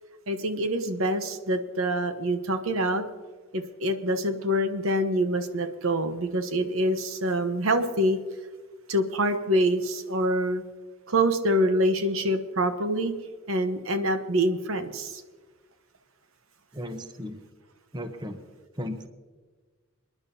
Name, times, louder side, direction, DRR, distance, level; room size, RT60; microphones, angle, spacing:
voice 1, 0.3-3.0 3.5-8.2 8.9-10.6 11.1-13.1 13.5-15.2, right 1 dB, 85° right, 8 dB, 1.0 m, -25 dB
voice 2, 16.7-17.4 17.9-18.4 18.8-19.1, equal, 20° right, 7 dB, 0.9 m, -35 dB
27.0 x 10.5 x 2.8 m, 1.4 s
head